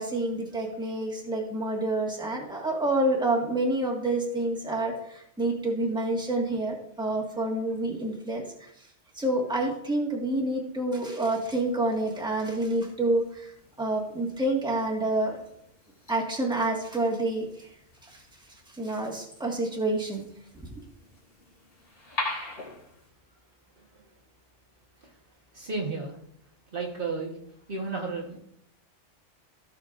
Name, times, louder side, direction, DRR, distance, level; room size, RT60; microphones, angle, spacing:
voice 1, 0.0-8.7 9.1-13.5 13.8-15.4 16.1-17.7 18.0-18.2 18.8-20.3 20.6-20.7, right 2 dB, 5° right, -2 dB, 1.7 m, -28 dB
sound 1, 11.3-23.1, left 2 dB, 65° left, 2.7 m, -43 dB
voice 2, 23.8-24.1 25.0-25.2 25.5-26.2 26.7-27.4 27.7-28.4, right 3 dB, 50° right, -2 dB, 1.5 m, -33 dB
15.5 x 6.5 x 2.5 m, 0.72 s
omnidirectional pair, 1.3 m